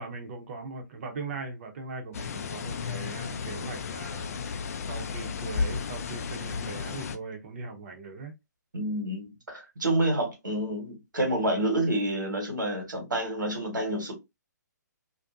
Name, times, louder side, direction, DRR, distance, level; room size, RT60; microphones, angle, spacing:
voice 1, 0.0-4.6 4.9-8.3, right 3 dB, 45° right, 0.7 m, -39 dB
sound 1, 2.1-7.2, left 5 dB, 55° left, 0.4 m, -33 dB
voice 2, 8.7-14.1, right 1 dB, 85° right, 1.3 m, -28 dB
2.6 x 2.1 x 2.4 m
figure-of-eight pair, 135°, 10 cm